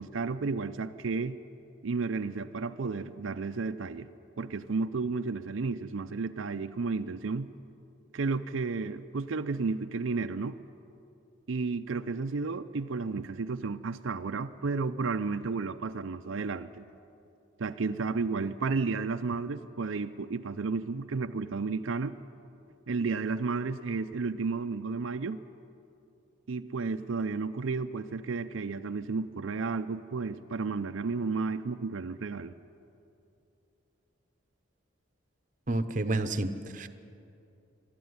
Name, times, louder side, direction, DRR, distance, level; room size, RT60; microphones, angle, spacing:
voice 1, 0.0-1.4 1.8-4.1 4.4-7.5 8.1-10.6 11.5-16.8 17.6-22.1 22.9-25.4 26.5-32.5, right 4 dB, 80° right, 8 dB, 0.6 m, -32 dB
voice 2, 35.7-36.9, right 2 dB, 40° right, 10 dB, 0.8 m, -30 dB
22.0 x 13.0 x 9.6 m, 2.7 s
head